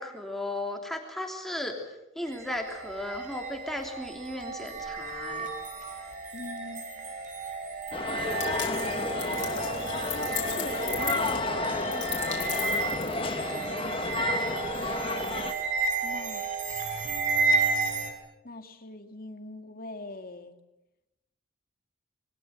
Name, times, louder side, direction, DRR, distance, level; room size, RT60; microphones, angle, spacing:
voice 1, 0.0-1.8 2.1-5.5 13.3-13.7, left 1 dB, ahead, 2 dB, 3.1 m, -36 dB
sound 1, 2.3-18.1, right 4 dB, 40° right, 5.9 m, -32 dB
voice 2, 6.3-7.1 8.6-9.1 10.1-11.3 11.6-11.9 12.7-14.9 16.0-16.4 18.4-20.5, left 2 dB, 50° left, 6 dB, 2.3 m, -44 dB
sound 2, 7.9-15.5, left 3 dB, 25° left, 1.6 m, -32 dB
sound 3, 8.4-13.6, left 14 dB, 75° left, 3.9 m, -38 dB
27.0 x 22.5 x 7.9 m, 0.93 s
head